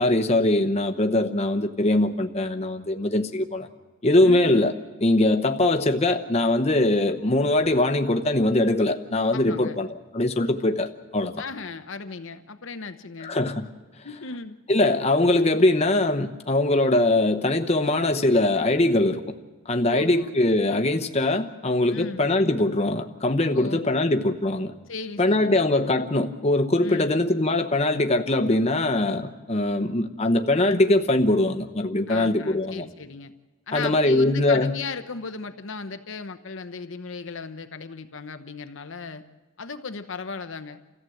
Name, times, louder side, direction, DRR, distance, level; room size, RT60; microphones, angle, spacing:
voice 1, 0.0-3.7 4.0-4.7 5.0-9.9 10.1-11.3 13.2-13.7 14.7-19.2 19.7-24.7 25.2-32.8 33.7-34.8, left 2 dB, 30° left, 6 dB, 0.9 m, -22 dB
voice 2, 4.2-4.6 9.3-9.8 11.4-13.4 14.0-14.6 19.9-20.4 21.9-22.3 23.5-24.1 24.9-25.6 26.8-27.2 32.1-33.3 33.7-39.2 39.6-40.8, left 4 dB, 60° left, 9 dB, 0.8 m, -36 dB
29.0 x 14.5 x 7.8 m, 1.3 s
head